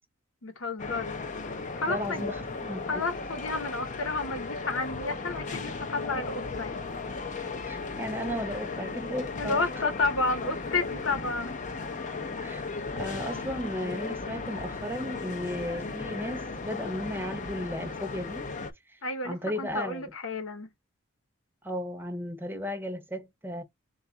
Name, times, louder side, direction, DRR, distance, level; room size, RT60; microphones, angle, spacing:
voice 1, 0.4-1.2 1.7-2.3 2.9-6.8 9.4-11.6 19.0-20.7, left 3 dB, 75° left, 0.9 m, -31 dB
sound 1, 0.8-18.7, left 4 dB, 35° left, 0.5 m, -36 dB
voice 2, 1.9-2.9 7.6-9.7 12.4-12.7 13.0-18.5 19.2-20.0 21.6-23.6, equal, 10° right, 0.7 m, -35 dB
4.2 x 2.4 x 3.8 m
head